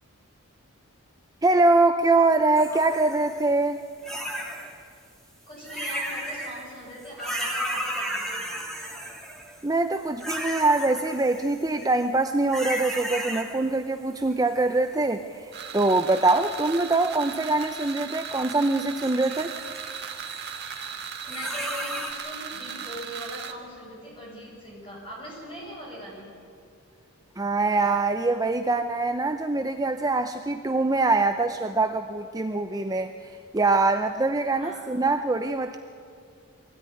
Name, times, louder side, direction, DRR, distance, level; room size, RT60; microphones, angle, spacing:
voice 1, 1.4-3.8 9.6-19.5 27.4-33.1 33.5-35.8, right 2 dB, 15° right, 6 dB, 0.6 m, -23 dB
sound 1, 2.6-3.4 4.0-4.7 5.6-6.6 7.0-9.6 10.2-12.0 12.5-13.8 14.1-15.1 16.0-17.1 17.6-18.7 19.0-22.1, equal, ahead, 2.3 m, -35 dB
voice 2, 5.5-8.4 21.0-22.0 22.2-26.3 34.6-34.8, equal, 25° left, -4 dB, 7.8 m, -40 dB
sound 2, 15.5-23.5, right 7 dB, 50° right, 1.5 m, -37 dB
22.5 x 17.0 x 9.8 m, 2.2 s
head